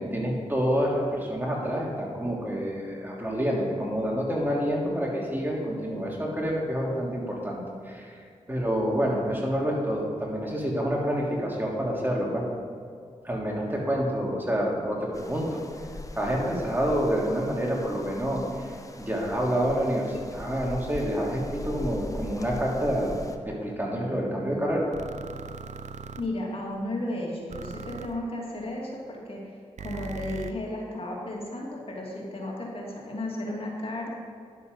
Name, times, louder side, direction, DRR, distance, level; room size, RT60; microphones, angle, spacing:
voice 1, 0.0-12.4 13.2-15.6 16.1-23.1 23.4-24.9, equal, 15° right, -3 dB, 3.1 m, -28 dB
sound 1, 15.1-23.4, left 2 dB, 25° left, 0.9 m, -41 dB
sound 2, 24.9-26.2 27.5-28.1 29.8-30.5, right 5 dB, 65° right, 0.6 m, -39 dB
voice 2, 26.2-29.6 29.8-34.1, left 1 dB, 45° left, -3 dB, 2.6 m, -34 dB
11.0 x 7.3 x 5.4 m, 2.3 s
cardioid pair, 45°, 13 cm